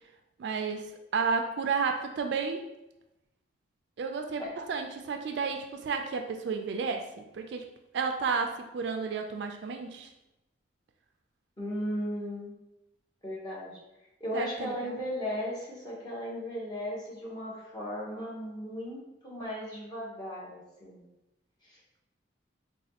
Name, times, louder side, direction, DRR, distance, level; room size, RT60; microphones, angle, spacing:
voice 1, 0.4-2.6 4.0-7.1 7.3-7.6 7.9-10.1 14.3-14.9, right 5 dB, 60° right, 5 dB, 0.3 m, -32 dB
voice 2, 11.6-12.5 13.2-13.7 14.2-21.0 21.6-21.8, equal, 20° left, -6 dB, 0.9 m, -36 dB
4.0 x 2.2 x 2.8 m, 0.93 s
head